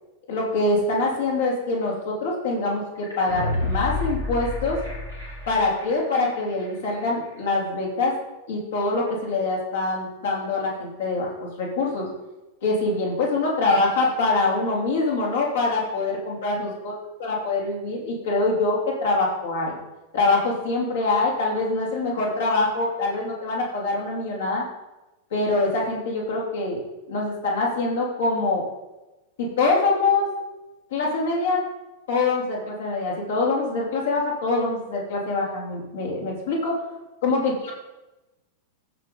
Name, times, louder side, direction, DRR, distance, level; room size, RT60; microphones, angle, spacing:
voice 1, 0.3-4.8 5.5-8.2 8.5-12.1 12.6-16.9 17.2-19.8 20.1-24.6 25.3-26.8 27.1-28.6 29.4-30.3 30.9-31.6 32.1-36.7 37.2-37.7, left 3 dB, 60° left, -3 dB, 3.5 m, -24 dB
sound 1, 3.0-5.9 6.2-6.3, left 2 dB, 80° left, 3.8 m, -29 dB
14.5 x 5.5 x 5.3 m, 1.0 s
figure-of-eight pair, 90°, 0 cm